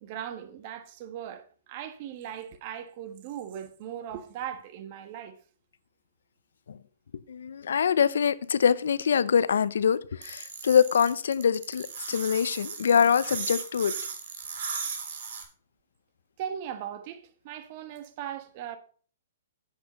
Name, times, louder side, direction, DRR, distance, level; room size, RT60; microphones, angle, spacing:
voice 1, 0.0-5.3 16.4-18.8, right 9 dB, 40° right, 1.4 m, -38 dB
voice 2, 7.3-13.9, left 7 dB, 80° left, 0.7 m, -24 dB
sound 1, 10.2-15.4, right 6 dB, 65° right, 3.1 m, -36 dB
8.7 x 8.1 x 5.3 m
hypercardioid pair, 150°, 0 cm